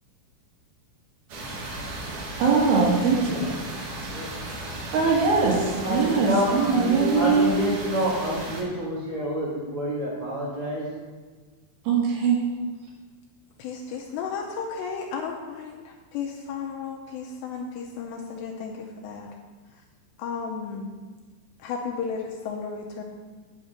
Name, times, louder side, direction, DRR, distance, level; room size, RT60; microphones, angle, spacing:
sound 1, 1.3-8.6, right 2 dB, 60° right, 2.2 m, -35 dB
voice 1, 2.4-3.4 4.9-7.5 11.9-12.4, right 5 dB, 80° right, -3 dB, 4.4 m, -21 dB
voice 2, 3.4-3.7 4.1-4.3 5.4-10.9, equal, 40° right, -5 dB, 1.5 m, -28 dB
voice 3, 13.6-19.3 20.2-20.9 21.6-23.0, left 5 dB, 80° left, 0 dB, 2.6 m, -34 dB
8.9 x 8.8 x 5.0 m, 1.4 s
omnidirectional pair, 5.6 m